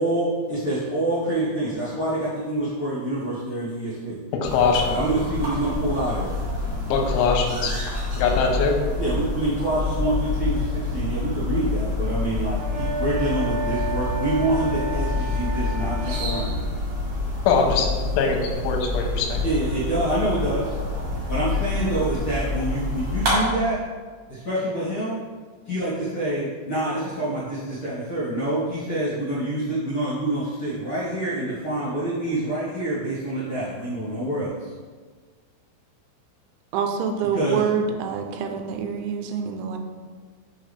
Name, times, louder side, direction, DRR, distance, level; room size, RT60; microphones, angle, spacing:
voice 1, 0.0-4.2 4.8-6.3 9.0-16.5 19.4-20.8 21.3-23.8 24.3-25.2 25.6-34.7 37.3-37.6, right 1 dB, 55° left, -11 dB, 1.4 m, -26 dB
voice 2, 4.3-5.0 6.9-7.7 8.2-8.7 17.5-17.9 18.2-19.4, left 5 dB, 90° left, 2 dB, 3.2 m, -22 dB
sound 1, 4.4-23.3, left 2 dB, 50° right, 2.5 m, -27 dB
sound 2, 12.5-16.5, right 2 dB, 70° right, 2.8 m, -31 dB
voice 3, 36.7-39.8, right 6 dB, 85° right, 4 dB, 3.0 m, -26 dB
6.5 x 6.4 x 3.4 m, 1.5 s
omnidirectional pair, 5.5 m